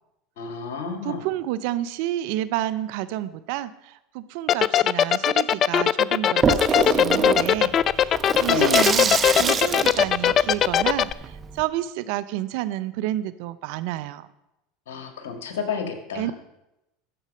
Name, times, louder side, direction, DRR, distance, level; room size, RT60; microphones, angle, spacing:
voice 1, 0.4-1.3 8.5-8.8 14.9-16.3, left 5 dB, 75° left, 6 dB, 1.6 m, -30 dB
voice 2, 1.0-14.3 16.1-16.3, right 14 dB, 65° right, 15 dB, 0.5 m, -30 dB
sound 1, 4.5-11.1, left 10 dB, 40° left, 0.3 m, -18 dB
Water tap faucet / Sink (filling or washing), 6.4-11.6, right 5 dB, 30° right, 0.9 m, -26 dB
13.5 x 5.3 x 5.2 m, 0.90 s
hypercardioid pair, 90°, 0 cm